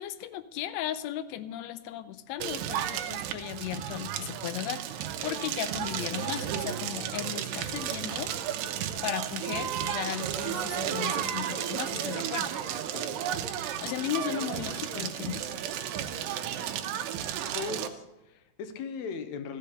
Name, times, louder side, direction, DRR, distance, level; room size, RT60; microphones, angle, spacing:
voice 1, 0.0-8.3 9.0-12.5 13.8-15.6, left 12 dB, 90° left, 11 dB, 1.5 m, -36 dB
Crackle, 2.4-17.9, right 10 dB, 90° right, 2.4 m, -33 dB
voice 2, 17.5-19.6, left 5 dB, 70° left, 9 dB, 1.9 m, -38 dB
15.0 x 5.7 x 6.5 m, 0.98 s
omnidirectional pair, 3.7 m